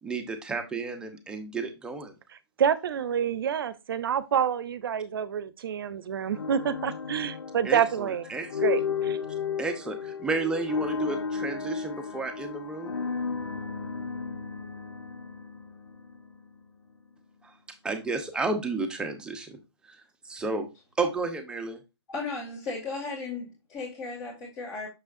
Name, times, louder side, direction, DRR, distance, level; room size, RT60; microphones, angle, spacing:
voice 1, 0.0-2.2 7.6-8.5 9.6-13.0 17.4-17.5 17.8-19.6 19.8-20.0 20.2-20.7 21.0-21.8, right 3 dB, 5° right, 0.8 m, -32 dB
voice 2, 2.6-8.2 8.6-9.2, right 8 dB, 55° right, 0.8 m, -28 dB
sound 1, 6.3-16.4, left 6 dB, 75° left, 0.9 m, -33 dB
voice 3, 22.1-24.9, left 3 dB, 25° left, 2.2 m, -35 dB
6.3 x 6.1 x 2.6 m
hypercardioid pair, 140°, 14 cm